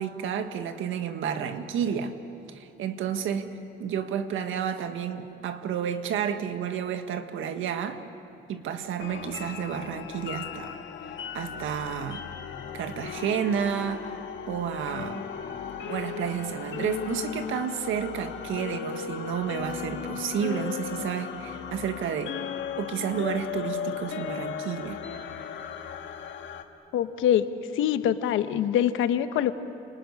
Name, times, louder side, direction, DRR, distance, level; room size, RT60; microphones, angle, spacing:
voice 1, 0.0-2.2 2.5-3.5 3.8-8.0 8.5-10.8 11.3-12.3 12.7-14.2 14.5-15.2 15.9-22.3 22.8-25.0, right 8 dB, 80° right, 8 dB, 1.7 m, -31 dB
sound 1, 9.0-26.6, left 8 dB, 70° left, 1.9 m, -36 dB
voice 2, 26.9-27.5 27.7-29.5, left 10 dB, 90° left, 10 dB, 1.2 m, -24 dB
30.0 x 19.5 x 9.9 m, 2.9 s
cardioid pair, 90°, 20 cm